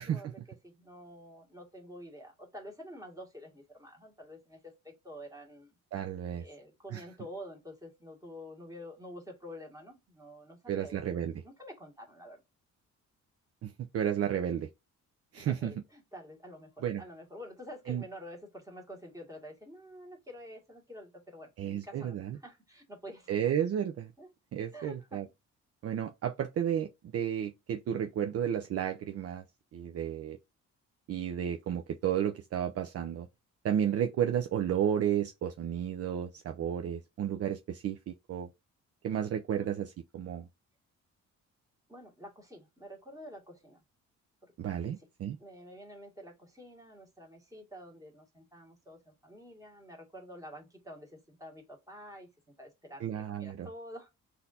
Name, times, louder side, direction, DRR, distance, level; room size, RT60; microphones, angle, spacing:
voice 1, 0.0-5.8 6.4-11.0 11.4-12.4 15.4-23.4 24.2-24.3 24.7-25.2 39.5-39.7 41.9-43.8 44.4-44.5 44.8-45.1 45.4-52.3 52.6-54.2, equal, 10° right, 1.7 m, -48 dB
voice 2, 5.9-6.4 6.9-7.0 10.7-11.4 13.6-14.7 15.3-15.7 16.8-17.0 17.9-18.0 21.6-22.4 23.3-24.1 24.5-25.3 25.8-29.4 29.7-30.4 31.1-33.3 33.6-38.5 39.0-40.5 44.6-45.4 53.0-53.7, right 9 dB, 50° right, 0.5 m, -32 dB
4.0 x 2.7 x 4.1 m
cardioid pair, 90°, 30 cm